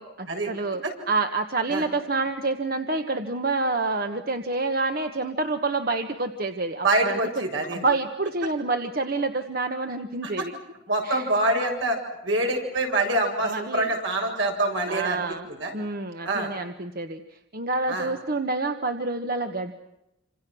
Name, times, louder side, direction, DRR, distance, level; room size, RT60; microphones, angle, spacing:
voice 1, 0.0-7.4 7.7-10.5 11.0-11.3 13.4-13.9 14.9-15.5 15.7-17.2 17.5-19.8, right 3 dB, 50° right, 7 dB, 1.3 m, -28 dB
voice 2, 6.8-7.9 10.2-10.5 10.9-12.0 12.2-15.2 15.6-15.7 16.2-16.5 17.9-18.1, right 2 dB, 75° right, 2 dB, 7.7 m, -25 dB
29.0 x 27.0 x 6.3 m, 0.88 s
head